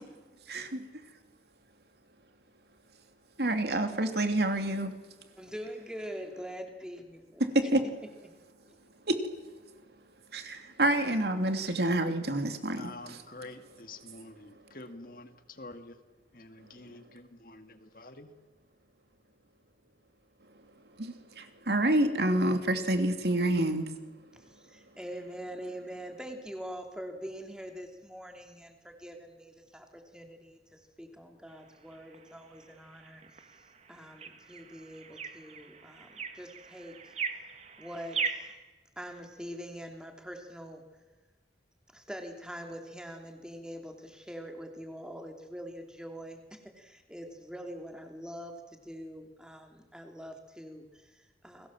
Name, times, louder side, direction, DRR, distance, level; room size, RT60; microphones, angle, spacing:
voice 1, 0.5-0.8 3.4-5.0 7.4-7.8 9.0-9.8 10.3-13.2 14.5-14.8 16.6-17.2 20.5-24.4 24.9-25.0, right 1 dB, 65° right, 7 dB, 2.8 m, -29 dB
voice 2, 5.4-7.7 24.3-33.2 33.9-37.1 37.8-38.5 39.0-40.8 41.9-51.7, equal, 5° right, 3 dB, 3.0 m, -44 dB
voice 3, 12.8-16.0 16.3-18.3, left 2 dB, 50° left, 8 dB, 2.0 m, -47 dB
sound 1, 31.5-38.6, right 6 dB, 40° right, 1.8 m, -40 dB
29.5 x 21.5 x 7.5 m, 1.3 s
head